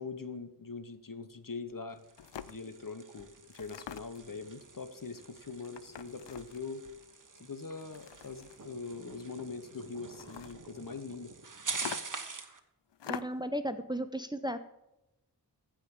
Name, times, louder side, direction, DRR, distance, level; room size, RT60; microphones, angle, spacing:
voice 1, 0.0-2.0 2.5-6.8 7.4-11.3, left 4 dB, 50° left, 11 dB, 0.9 m, -42 dB
sound 1, 1.7-1.8 2.2-2.6 3.5-4.3 5.6-6.7 7.8-8.7 10.1-10.6 11.7-12.3 12.9-13.5, left 9 dB, 85° left, 0.5 m, -44 dB
sound 2, 1.9-12.6, right 4 dB, 45° right, 1.1 m, -45 dB
voice 2, 13.1-14.6, equal, 10° right, 10 dB, 0.6 m, -35 dB
14.5 x 5.1 x 5.3 m, 0.90 s
wide cardioid pair, 40°, 42 cm